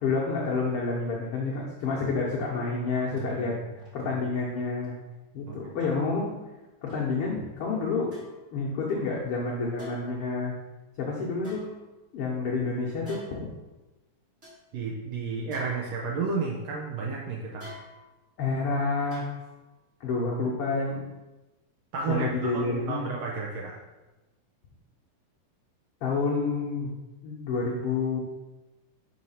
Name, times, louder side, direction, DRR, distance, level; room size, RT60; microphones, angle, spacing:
voice 1, 0.0-3.6 3.9-4.9 5.3-6.3 6.8-8.2 8.5-10.5 11.0-11.6 12.1-13.5 18.4-19.3 20.0-21.0 22.1-23.1 26.0-26.9 27.2-28.2, left 4 dB, 90° left, -4 dB, 1.2 m, -29 dB
voice 2, 3.1-3.6 4.0-4.1 5.5-5.6 14.7-17.7 21.9-23.8, right 4 dB, 75° right, -3 dB, 1.6 m, -32 dB
sound 1, 3.2-3.3 3.8-4.0 4.8-4.9 5.8-5.9 6.9-7.0 8.1-8.5 9.8-10.3 11.4-12.3 13.0-13.5 14.0-14.1 14.4-14.6 15.5-16.3 17.6-18.3 19.1-19.7 20.0-20.1, left 1 dB, 20° right, 2.5 m, -48 dB
5.7 x 4.7 x 5.6 m, 1.1 s
omnidirectional pair, 3.9 m